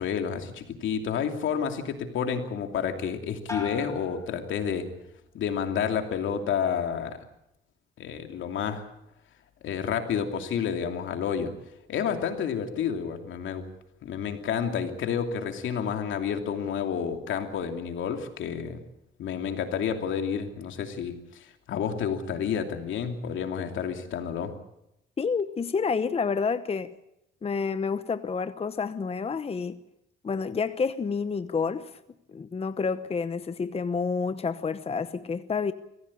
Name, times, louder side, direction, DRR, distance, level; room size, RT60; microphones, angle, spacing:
voice 1, 0.0-4.9 5.3-7.2 8.0-8.9 9.6-11.5 11.9-13.6 14.0-18.8 19.2-24.5, left 7 dB, 75° left, 2.8 m, -30 dB
sound 1, 3.5-5.2 5.6-6.2, left 4 dB, 15° left, 5.5 m, -40 dB
voice 2, 25.2-26.9 27.4-29.8 30.2-31.9 32.3-35.7, left 5 dB, 30° left, 0.9 m, -29 dB
24.0 x 16.0 x 8.5 m
cardioid pair, 90°, 20 cm